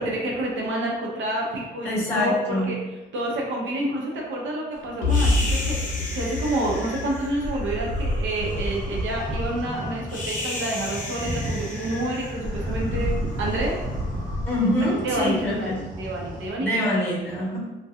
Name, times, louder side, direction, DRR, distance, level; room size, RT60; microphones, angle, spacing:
voice 1, 0.0-2.8 3.1-13.8 15.0-15.7 16.0-16.7, right 1 dB, 70° right, -2 dB, 0.7 m, -28 dB
voice 2, 1.8-2.7 14.4-15.8 16.6-17.6, left 1 dB, 10° left, -7 dB, 1.2 m, -24 dB
sound 1, 5.0-8.9, left 3 dB, 90° left, 0.6 m, -26 dB
sound 2, 5.1-15.4, left 1 dB, 40° left, 0.7 m, -31 dB
sound 3, 8.4-16.5, equal, 40° right, 0.7 m, -35 dB
2.7 x 2.2 x 2.3 m, 1.1 s
cardioid pair, 90°, 20 cm